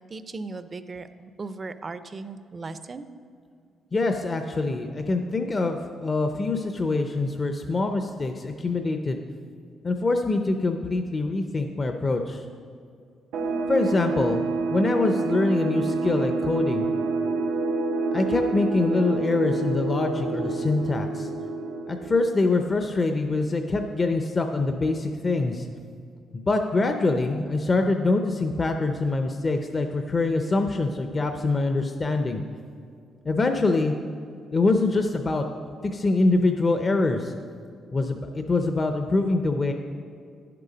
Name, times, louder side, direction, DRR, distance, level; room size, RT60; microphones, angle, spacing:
voice 1, 0.1-3.1, right 3 dB, 35° right, 11 dB, 0.5 m, -37 dB
voice 2, 3.9-9.2 9.8-12.4 13.7-14.4 14.7-16.9 18.1-21.3 21.9-25.7 26.3-32.4 33.2-33.9 34.5-35.4 35.8-37.3 37.9-39.7, left 3 dB, 35° left, 5 dB, 0.6 m, -24 dB
sound 1, 13.3-22.7, right 3 dB, 85° right, 0.8 m, -28 dB
10.5 x 6.8 x 5.0 m, 2.3 s
cardioid pair, 90°, 0 cm